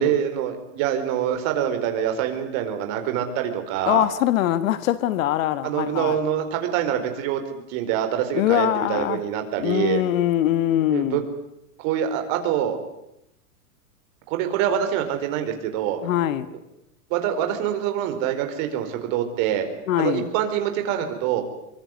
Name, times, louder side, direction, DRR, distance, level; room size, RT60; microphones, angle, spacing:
voice 1, 0.0-4.1 5.6-10.0 10.9-11.2 11.8-12.8 14.3-16.0 17.1-19.7 20.0-21.4, right 10 dB, 40° right, 4.6 m, -25 dB
voice 2, 3.9-6.2 8.3-9.2 9.6-11.2 16.0-16.5 19.9-20.3, left 12 dB, 60° left, 1.6 m, -22 dB
24.0 x 24.0 x 9.6 m
supercardioid pair, 160°, 45 cm